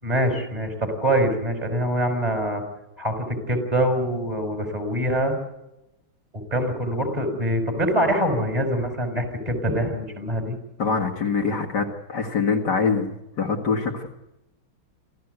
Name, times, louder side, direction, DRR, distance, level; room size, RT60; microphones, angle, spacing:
voice 1, 0.0-2.6 3.0-5.3 6.5-10.6, equal, 20° right, 4 dB, 5.6 m, -24 dB
voice 2, 10.8-14.2, left 5 dB, 55° left, 1 dB, 2.4 m, -24 dB
27.5 x 15.0 x 8.1 m, 0.93 s
omnidirectional pair, 2.3 m